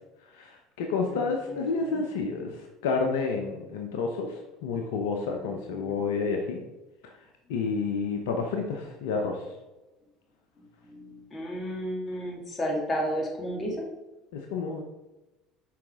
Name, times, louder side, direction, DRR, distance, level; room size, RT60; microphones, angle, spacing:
voice 1, 0.3-6.6 7.0-7.1 7.5-9.5 14.3-14.8, left 4 dB, 75° left, 3 dB, 0.8 m, -30 dB
voice 2, 1.1-2.0 5.4-6.0 10.8-13.9, equal, 30° left, -1 dB, 2.6 m, -33 dB
7.5 x 5.1 x 3.7 m, 1.0 s
hypercardioid pair, 70°, 0 cm